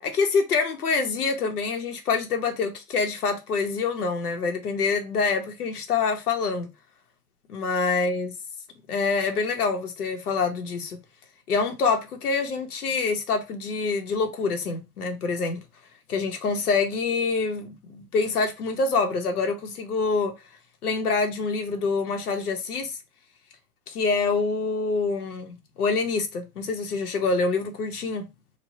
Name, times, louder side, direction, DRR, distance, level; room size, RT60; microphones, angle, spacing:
voice 1, 0.0-6.7 7.5-8.3 8.9-11.0 11.5-15.6 16.1-20.3 20.8-23.0 23.9-28.3, left 4 dB, 85° left, 1.0 m, -26 dB
3.1 x 2.3 x 2.7 m
hypercardioid pair, 145°, 45 cm